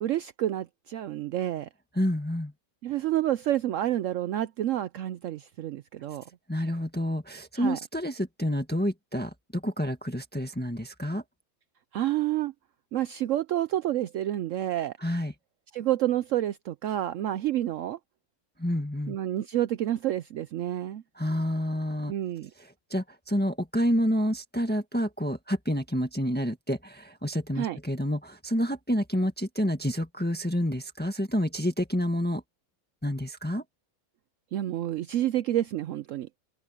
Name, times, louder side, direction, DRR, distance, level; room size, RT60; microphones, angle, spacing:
voice 1, 0.0-1.7 2.8-6.2 7.6-7.8 11.9-12.5 12.9-14.9 15.7-18.0 19.1-21.0 22.1-22.5 27.6-27.8 34.5-36.3, right 13 dB, 70° right, 0.9 m, -29 dB
voice 2, 1.9-2.5 6.5-11.2 15.0-15.3 18.6-19.2 21.2-22.1 22.9-32.4 33.0-33.6, equal, 5° left, 1.6 m, -28 dB
open air
omnidirectional pair, 1.5 m